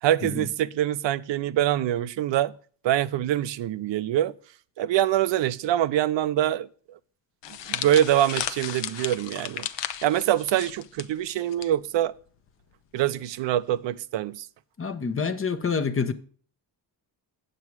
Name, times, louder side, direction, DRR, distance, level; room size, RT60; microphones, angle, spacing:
voice 1, 0.0-2.5 2.8-4.3 4.8-7.0 7.7-9.7 10.0-12.1 12.9-14.5, right 12 dB, 85° right, 0.6 m, -24 dB
sound 1, 7.4-11.7 12.0-12.2 13.1-13.4, left 10 dB, 75° left, 0.8 m, -34 dB
voice 2, 14.8-16.1, left 5 dB, 30° left, 0.9 m, -27 dB
8.5 x 7.6 x 4.6 m
cardioid pair, 120°, 43 cm